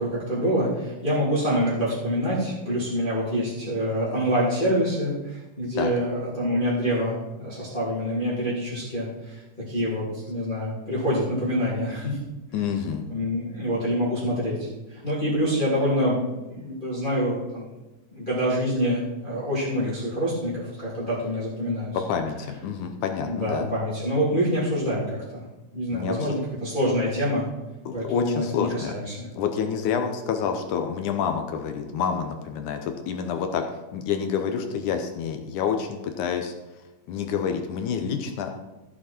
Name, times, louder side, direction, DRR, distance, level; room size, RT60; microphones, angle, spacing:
voice 1, 0.0-12.2 13.1-17.7 18.1-22.0 23.2-25.4 25.7-27.4 27.9-29.3, equal, 15° left, -9 dB, 2.8 m, -26 dB
voice 2, 12.5-13.1 22.1-23.7 25.9-26.1 27.9-28.9 29.4-36.5 37.1-38.5, left 7 dB, 70° left, 5 dB, 2.1 m, -28 dB
14.5 x 7.3 x 4.4 m, 1.0 s
omnidirectional pair, 4.0 m